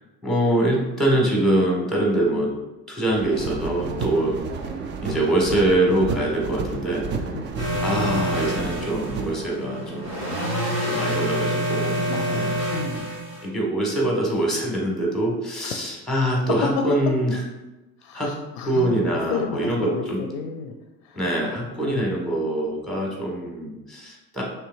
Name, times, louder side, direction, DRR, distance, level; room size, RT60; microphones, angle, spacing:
voice 1, 0.2-2.5 2.9-4.4 5.0-7.1 7.8-10.1 10.8-12.0 12.3-12.6 13.4-17.4 18.1-18.3 18.6-20.2 21.1-24.4, right 1 dB, ahead, -2 dB, 1.5 m, -24 dB
sound 1, 3.1-9.5, right 4 dB, 25° right, 0.4 m, -31 dB
sound 2, 7.6-13.5, right 1 dB, 90° right, 1.2 m, -27 dB
voice 2, 12.1-13.1 15.6-15.9 18.0-20.7 21.0-21.2 21.8-22.0, left 6 dB, 55° left, 4 dB, 0.6 m, -32 dB
5.5 x 3.5 x 2.6 m, 1.0 s
figure-of-eight pair, 65°, 48 cm